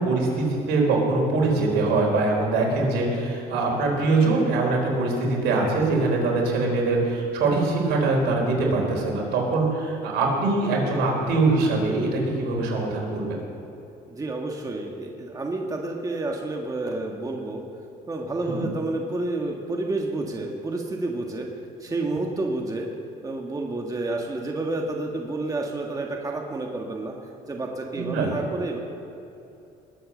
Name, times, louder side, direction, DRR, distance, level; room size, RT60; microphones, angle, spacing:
voice 1, 0.0-13.4 18.4-18.6 27.9-28.3, right 3 dB, 80° right, -1 dB, 4.3 m, -23 dB
voice 2, 14.1-17.6 18.1-21.5 21.8-22.9 23.2-27.1 27.5-28.8, right 2 dB, 20° right, 1 dB, 1.6 m, -29 dB
20.5 x 8.1 x 6.6 m, 2.7 s
cardioid pair, 110°, 17 cm